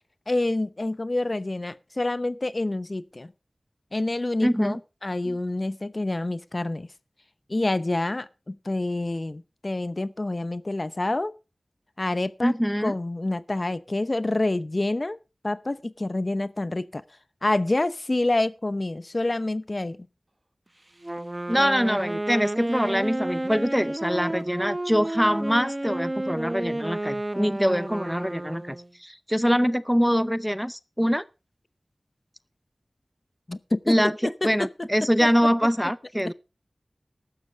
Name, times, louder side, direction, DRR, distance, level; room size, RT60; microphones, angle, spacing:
voice 1, 0.3-3.3 3.9-6.9 7.5-11.3 12.0-12.5 12.8-15.2 15.4-17.0 17.4-20.0 33.5-34.0 34.2-34.7 35.2-35.3, left 2 dB, 45° left, 0.8 m, -27 dB
voice 2, 4.4-4.8 5.3-5.4 12.4-12.9 21.5-31.2 33.9-34.2 34.4-36.3, equal, ahead, 0.6 m, -24 dB
Wind instrument woodwind instrument, 21.0-28.9, right 1 dB, 25° right, 0.8 m, -31 dB
15.0 x 12.5 x 3.5 m
wide cardioid pair, 60°, 0 cm